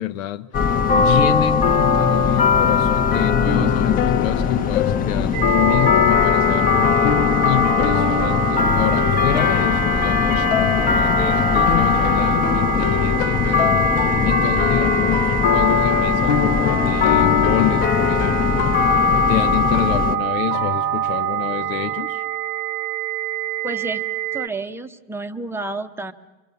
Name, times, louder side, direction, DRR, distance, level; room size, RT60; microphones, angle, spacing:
voice 1, 0.0-13.7 14.2-18.9 19.3-22.2, left 12 dB, 85° left, 0.9 m, -28 dB
sound 1, 0.5-20.2, left 6 dB, 20° left, 0.9 m, -19 dB
sound 2, 3.4-22.0, left 9 dB, 60° left, 0.8 m, -27 dB
sound 3, 5.3-24.5, right 15 dB, 75° right, 0.8 m, -26 dB
voice 2, 23.6-24.0 24.3-26.1, right 2 dB, 5° right, 0.7 m, -30 dB
24.5 x 24.5 x 6.9 m
supercardioid pair, 145°, 39 cm